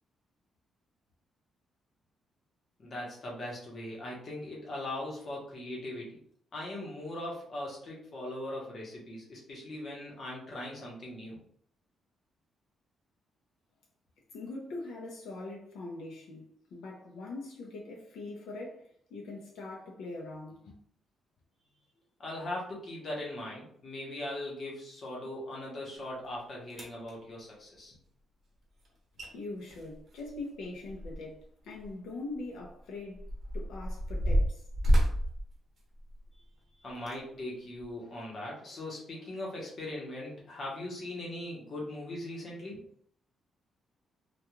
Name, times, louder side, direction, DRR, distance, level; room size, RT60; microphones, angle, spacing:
voice 1, 2.8-6.2 6.5-11.4 22.2-28.0 36.8-42.8, left 1 dB, 35° left, 0.9 m, -40 dB
voice 2, 14.3-20.8 29.3-34.6, left 2 dB, 80° left, 0.6 m, -42 dB
sound 1, 26.2-26.3 26.7-27.1 28.9-29.0 29.2-29.3 29.6-31.4 31.8-31.9 32.6-36.4 37.0-37.2 37.8-37.9, equal, 40° right, 0.7 m, -30 dB
2.3 x 2.3 x 3.0 m
cardioid pair, 165°, 0 cm